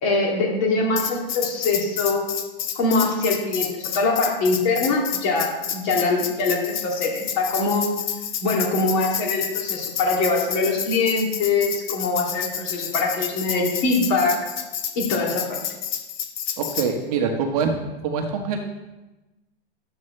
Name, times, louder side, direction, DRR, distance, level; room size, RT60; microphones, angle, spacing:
voice 1, 0.0-2.2 2.7-7.9 8.4-14.5 15.0-15.6, left 3 dB, 35° left, -1 dB, 2.6 m, -23 dB
Tambourine, 1.0-16.9, left 9 dB, 50° left, 1.2 m, -30 dB
voice 2, 16.6-17.7 18.0-18.6, right 6 dB, 40° right, 4 dB, 1.2 m, -24 dB
12.5 x 8.1 x 3.3 m, 1.1 s
hypercardioid pair, 150°, 30 cm